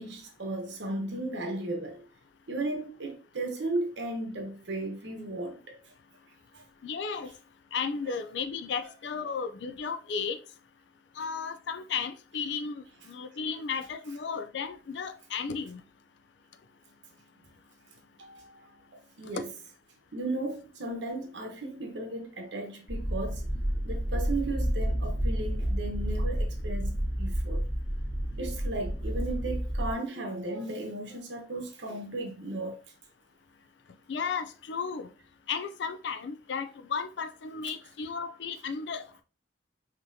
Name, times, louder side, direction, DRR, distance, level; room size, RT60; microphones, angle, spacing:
voice 1, 0.0-2.1 2.5-5.8 6.5-6.6 18.2-19.5 20.1-23.5 23.8-27.6 28.4-32.8, right 2 dB, 75° right, 1.0 m, -35 dB
voice 2, 6.8-7.3 7.7-10.4 11.2-15.8 19.3-19.4 34.1-35.1 35.5-39.2, left 5 dB, 75° left, 0.4 m, -34 dB
sound 1, 22.9-29.9, equal, 5° left, 2.0 m, -30 dB
5.5 x 3.0 x 2.7 m
head